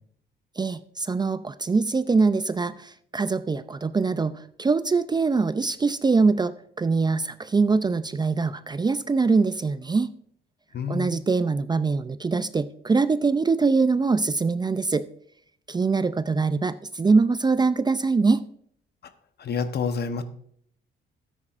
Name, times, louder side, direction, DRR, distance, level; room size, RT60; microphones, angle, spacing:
voice 1, 0.6-10.1 10.9-15.0 15.7-18.4, right 4 dB, 20° right, 13 dB, 0.4 m, -23 dB
voice 2, 10.7-11.1 19.4-20.2, left 5 dB, 55° left, 9 dB, 1.0 m, -28 dB
13.0 x 9.8 x 2.5 m, 0.64 s
cardioid pair, 90°, 20 cm